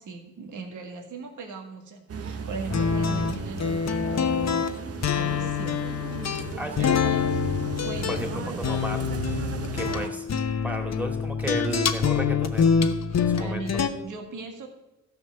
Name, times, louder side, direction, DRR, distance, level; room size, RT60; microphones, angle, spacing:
voice 1, 0.0-4.4 5.1-5.9 6.3-7.2 7.8-8.9 9.8-10.2 13.1-14.7, right 4 dB, 70° right, 2 dB, 2.0 m, -39 dB
sound 1, 2.1-10.1, right 5 dB, 50° right, 0.9 m, -35 dB
sound 2, 2.7-13.9, left 7 dB, 55° left, 1.0 m, -26 dB
voice 2, 6.6-7.1 8.1-9.0 9.7-10.2 10.6-12.7 13.2-13.6, right 1 dB, 5° right, 3 dB, 2.4 m, -33 dB
13.5 x 5.2 x 7.1 m, 0.94 s
supercardioid pair, 55°, 32 cm